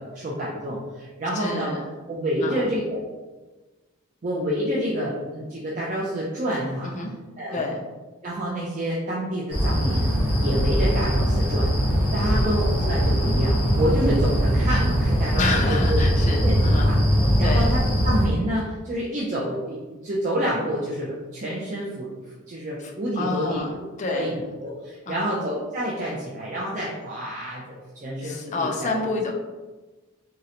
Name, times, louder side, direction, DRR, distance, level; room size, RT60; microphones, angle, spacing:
voice 1, 0.0-1.7 2.1-3.0 4.2-6.9 7.4-7.6 8.2-11.7 12.1-17.0 17.4-22.1 22.5-23.6 24.0-24.3 24.6-28.9, equal, 35° right, -5 dB, 0.4 m, -28 dB
voice 2, 1.3-1.9 2.4-2.7 6.8-7.2 7.5-7.8 12.3-12.6 15.4-16.9 17.4-17.8 22.8-24.4 25.1-25.4 28.2-29.3, left 3 dB, 35° left, 2 dB, 0.3 m, -29 dB
sound 1, 9.5-18.3, equal, 10° right, 0.9 m, -21 dB
3.7 x 2.1 x 2.8 m, 1.2 s
head